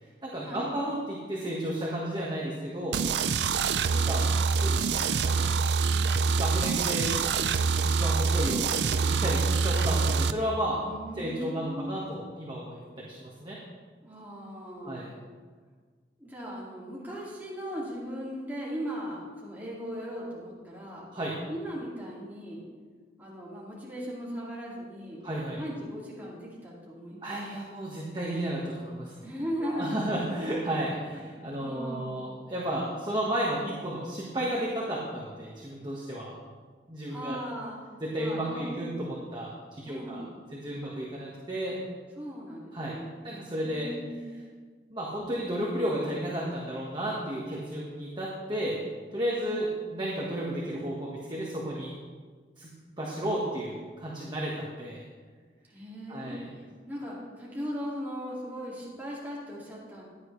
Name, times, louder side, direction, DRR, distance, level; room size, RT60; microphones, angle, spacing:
voice 1, 0.2-3.0 3.9-5.5 6.3-7.2 7.8-10.8 11.2-13.6 14.8-15.1 21.1-21.3 25.2-25.6 27.2-29.3 29.7-36.3 36.9-37.4 38.0-40.2 40.5-41.8 42.7-43.0 43.2-43.9 44.9-48.8 49.1-51.9 52.6-52.7 53.0-55.0 56.1-56.5, right 1 dB, 25° right, -5 dB, 1.5 m, -33 dB
sound 1, 2.9-10.3, right 5 dB, 80° right, 0.5 m, -25 dB
voice 2, 10.8-12.0 14.0-15.0 16.2-21.1 21.5-22.6 23.2-25.2 25.5-27.3 29.2-30.2 31.1-31.2 31.6-32.3 37.1-37.8 38.2-38.9 39.9-40.3 40.8-40.9 42.2-43.2 43.6-44.5 49.3-49.7 55.7-60.0, equal, 10° right, -6 dB, 2.4 m, -38 dB
15.5 x 10.5 x 3.3 m, 1.5 s
head